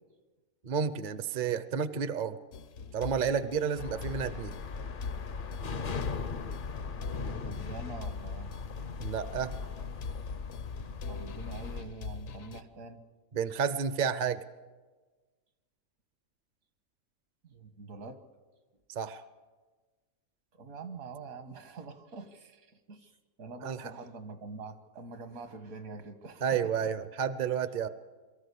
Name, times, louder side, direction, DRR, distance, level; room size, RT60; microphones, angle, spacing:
voice 1, 0.6-2.4 2.9-4.5 9.0-9.5 13.3-14.4 18.9-19.2 23.6-23.8 26.4-27.9, right 7 dB, 45° right, 13 dB, 0.7 m, -31 dB
sound 1, 2.5-12.6, left 4 dB, 65° left, 1.2 m, -43 dB
sound 2, 3.8-11.8, left 5 dB, 45° left, 0.8 m, -39 dB
voice 2, 7.1-8.5 11.1-13.0 17.4-18.2 20.5-26.9, right 3 dB, 75° right, 8 dB, 1.9 m, -45 dB
22.5 x 14.0 x 8.4 m, 1.3 s
omnidirectional pair, 1.5 m